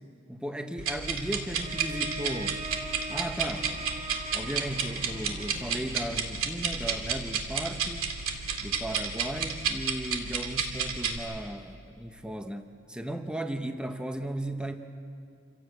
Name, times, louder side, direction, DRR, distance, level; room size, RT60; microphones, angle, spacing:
voice 1, 0.3-2.6 3.1-3.7 4.3-8.1 8.6-14.8, right 1 dB, 5° right, 6 dB, 0.8 m, -36 dB
sound 1, 0.8-11.2, right 6 dB, 80° right, 2.4 m, -32 dB
Bowed string instrument, 1.5-6.4, right 2 dB, 35° right, 6.0 m, -41 dB
27.5 x 16.5 x 8.1 m, 2.5 s
head